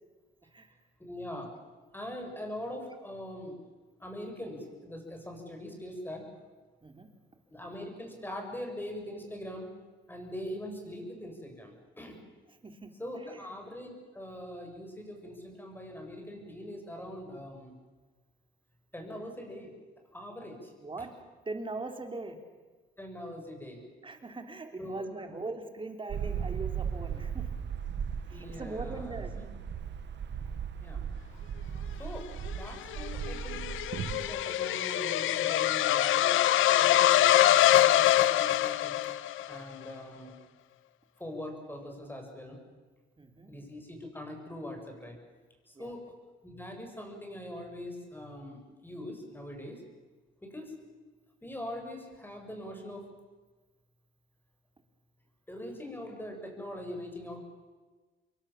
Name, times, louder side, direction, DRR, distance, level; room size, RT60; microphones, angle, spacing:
voice 1, 1.0-1.5 1.9-3.5 4.0-6.3 7.5-9.7 10.1-12.2 13.0-17.7 18.9-19.7 20.1-20.7 21.0-21.1 23.0-23.8 24.8-25.0 28.3-29.2 30.8-31.0 32.0-33.7 34.2-36.4 36.7-39.0 39.5-40.3 41.2-42.6 43.5-45.2 45.7-46.0 46.4-49.8 50.4-50.8 51.4-53.0 55.5-57.4, left 1 dB, 10° left, 2 dB, 7.5 m, -42 dB
voice 2, 12.6-13.5 20.8-21.1 21.5-22.4 24.0-27.4 28.3-29.3 36.9-37.0 43.2-43.5 45.8-45.9, right 3 dB, 25° right, 5 dB, 3.7 m, -41 dB
sound 1, 26.1-34.3, right 7 dB, 65° right, 2.1 m, -37 dB
sound 2, 32.5-39.6, left 13 dB, 80° left, 0.9 m, -24 dB
27.0 x 23.0 x 7.4 m, 1.3 s
cardioid pair, 90°, 20 cm